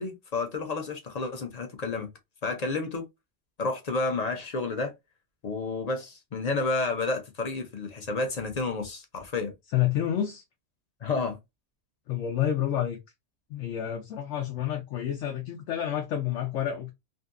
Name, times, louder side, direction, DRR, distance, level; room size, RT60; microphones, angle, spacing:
voice 1, 0.0-2.1 2.4-3.0 3.6-4.9 5.4-9.5 11.0-11.4, left 3 dB, 45° left, 0.5 m, -30 dB
voice 2, 9.7-10.4 12.1-13.0 13.5-16.9, left 11 dB, 80° left, 0.9 m, -29 dB
2.6 x 2.5 x 2.3 m
omnidirectional pair, 1.3 m